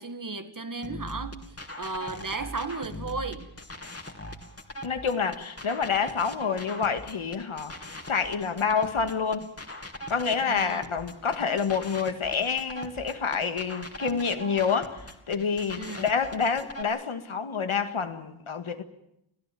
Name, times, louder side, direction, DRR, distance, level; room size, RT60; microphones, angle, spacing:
voice 1, 0.0-1.5 1.8-3.5 10.5-10.8 15.8-16.1, right 3 dB, 40° right, 2.0 m, -35 dB
sound 1, 0.8-16.8, equal, 30° left, 2.9 m, -41 dB
voice 2, 4.8-7.7 8.1-9.5 10.1-15.0 15.3-18.8, left 6 dB, 80° left, 2.0 m, -28 dB
25.5 x 16.0 x 9.2 m
wide cardioid pair, 65°, 49 cm